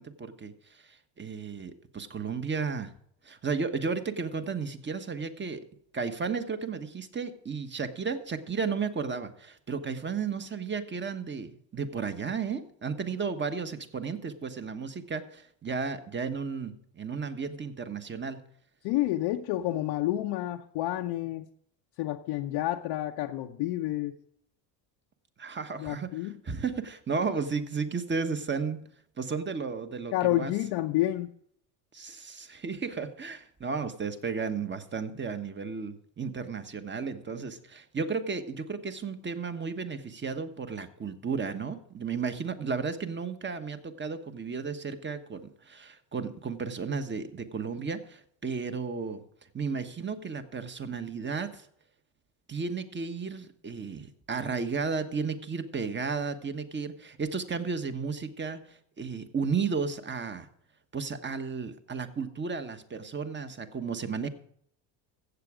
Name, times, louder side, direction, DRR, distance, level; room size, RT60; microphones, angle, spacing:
voice 1, 0.0-2.9 3.2-5.6 5.9-18.4 25.4-28.8 29.2-30.5 31.9-49.2 49.5-51.7 52.5-60.5 60.9-64.3, right 5 dB, 20° right, 9 dB, 1.2 m, -33 dB
voice 2, 18.8-21.5 22.0-24.1 25.8-26.3 30.1-31.3, left 15 dB, 65° left, 2 dB, 0.8 m, -29 dB
15.0 x 7.6 x 4.9 m, 0.68 s
supercardioid pair, 85°, 50 cm